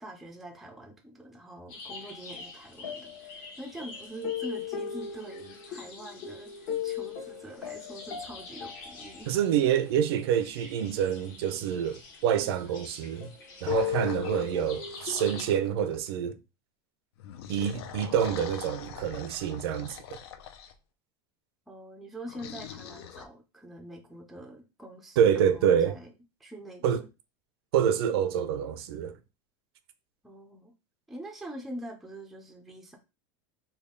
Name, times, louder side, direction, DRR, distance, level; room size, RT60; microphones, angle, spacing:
voice 1, 0.0-9.3 21.7-26.1 26.4-26.8 30.2-30.7 31.1-33.0, right 1 dB, ahead, 0.4 m, -44 dB
sound 1, 1.7-15.4, left 8 dB, 55° left, 1.1 m, -38 dB
voice 2, 9.3-13.3 13.6-16.4 17.5-20.0 25.2-25.9 26.8-27.0 27.7-29.2, right 9 dB, 85° right, 0.5 m, -27 dB
sound 2, 13.7-16.0 17.2-20.7 22.3-23.3, left 8 dB, 85° left, 0.6 m, -44 dB
3.4 x 2.3 x 3.7 m
supercardioid pair, 175°, 13 cm